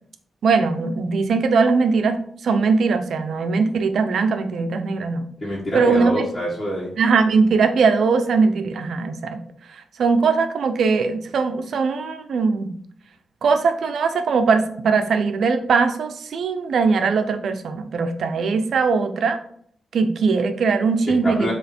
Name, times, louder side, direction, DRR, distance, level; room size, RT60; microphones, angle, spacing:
voice 1, 0.4-5.2 5.7-6.2 7.0-9.4 10.0-12.7 13.4-19.4 19.9-21.5, right 4 dB, 80° right, 8 dB, 0.7 m, -20 dB
voice 2, 5.4-6.9 21.1-21.5, equal, 40° left, -8 dB, 2.1 m, -26 dB
7.6 x 3.2 x 4.3 m, 0.62 s
cardioid pair, 85°, 0 cm